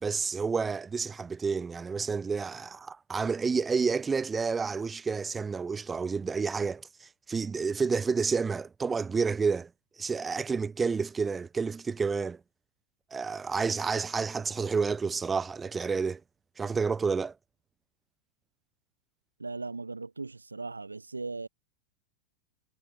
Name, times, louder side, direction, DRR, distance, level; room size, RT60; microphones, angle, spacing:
voice 1, 0.0-9.7 10.0-12.4 13.1-16.2 16.6-17.3, right 5 dB, 15° right, 0.8 m, -30 dB
voice 2, 19.4-21.5, right 3 dB, 80° right, 2.2 m, -38 dB
figure-of-eight pair, 90°, 0 cm